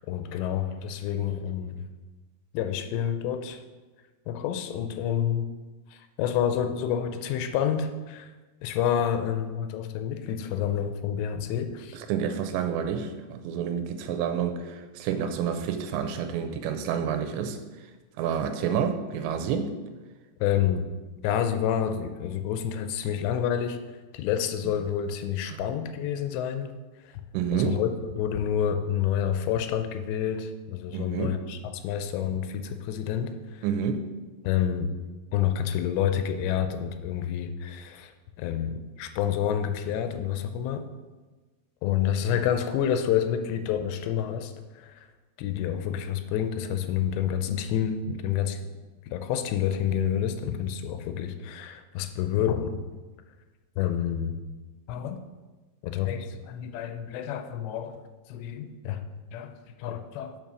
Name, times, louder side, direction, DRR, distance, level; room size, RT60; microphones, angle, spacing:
voice 1, 0.0-1.8 2.5-3.6 4.3-5.5 5.9-8.3 8.6-12.0 20.4-20.9 21.2-23.8 24.1-26.7 27.0-27.1 27.5-33.6 34.4-34.9 35.3-38.1 38.4-40.8 41.8-45.1 45.4-48.7 49.1-52.8 53.8-54.4 54.9-55.2 55.8-58.0 58.3-59.0 59.3-59.5 59.8-60.4, left 9 dB, 85° left, 8 dB, 2.8 m, -28 dB
voice 2, 11.9-17.6 18.2-19.7 24.7-24.8 25.5-25.6 27.3-27.8 30.9-31.4 33.6-34.1, right 7 dB, 85° right, 7 dB, 2.9 m, -29 dB
7.3 x 5.2 x 6.1 m, 1.3 s
omnidirectional pair, 5.1 m